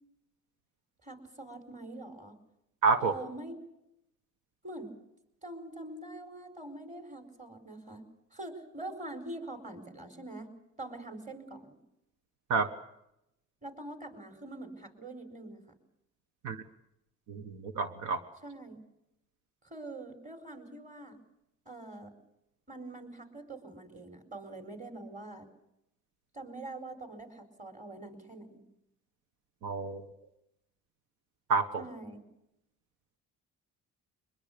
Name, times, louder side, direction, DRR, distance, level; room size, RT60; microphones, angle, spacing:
voice 1, 1.0-2.4 3.0-3.6 4.6-4.9 5.4-8.0 8.3-10.5 10.8-11.8 13.6-15.6 18.4-18.8 19.6-21.2 21.6-22.1 22.7-25.5 26.3-28.6 31.8-32.2, right 2 dB, 25° right, 7 dB, 4.8 m, -44 dB
voice 2, 2.8-3.1 12.5-12.7 16.4-16.6 17.3-18.2 29.6-30.1 31.5-31.8, right 4 dB, 90° right, 9 dB, 1.4 m, -28 dB
23.0 x 21.0 x 6.8 m, 0.84 s
cardioid pair, 90°, 30 cm